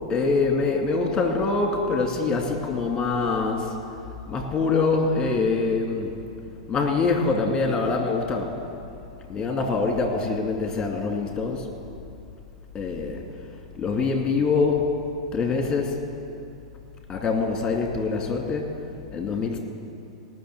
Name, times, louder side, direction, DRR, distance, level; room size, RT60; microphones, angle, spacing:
voice 1, 0.1-3.8 4.3-6.1 6.7-8.6 9.3-11.7 12.7-13.2 13.5-14.9 15.3-16.0 17.1-18.8 19.1-19.6, left 4 dB, 20° left, 2 dB, 2.4 m, -24 dB
18.5 x 6.5 x 8.0 m, 2.5 s
hypercardioid pair, 105°, 3 cm